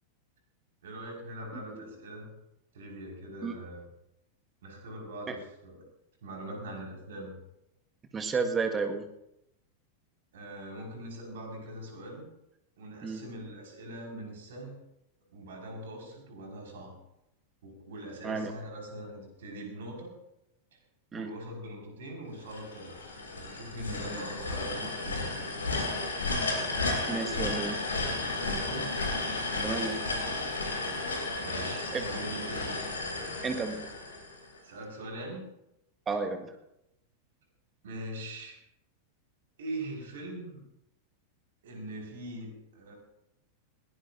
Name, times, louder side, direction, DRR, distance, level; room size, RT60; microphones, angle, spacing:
voice 1, 0.8-2.3 2.7-3.8 4.6-5.8 6.2-7.4 10.3-12.2 12.8-14.8 15.3-16.9 17.6-20.1 21.1-23.0 23.4-25.7 28.4-28.9 29.8-29.9 31.4-32.8 34.6-35.5 37.8-38.6 39.6-40.6 41.6-42.9, right 1 dB, 60° right, 1 dB, 5.3 m, -42 dB
voice 2, 8.1-9.1 13.0-13.2 18.2-18.5 21.1-21.3 27.1-27.8 29.6-30.0 31.9-32.0 33.4-33.8 36.1-36.5, right 4 dB, 20° right, 6 dB, 1.7 m, -32 dB
sound 1, 22.5-34.6, left 2 dB, 70° left, 3.4 m, -33 dB
21.0 x 17.5 x 2.7 m, 0.83 s
figure-of-eight pair, 90°, 0 cm